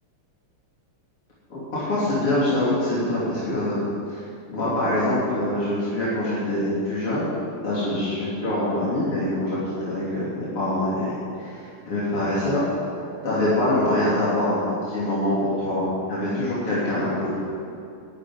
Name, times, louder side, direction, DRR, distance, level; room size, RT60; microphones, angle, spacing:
voice 1, 1.5-4.2 4.5-7.3 7.6-11.5 11.9-12.7 13.2-17.4, left 1 dB, 85° left, -9 dB, 4.2 m, -24 dB
11.5 x 10.5 x 9.6 m, 2.5 s
omnidirectional pair, 2.4 m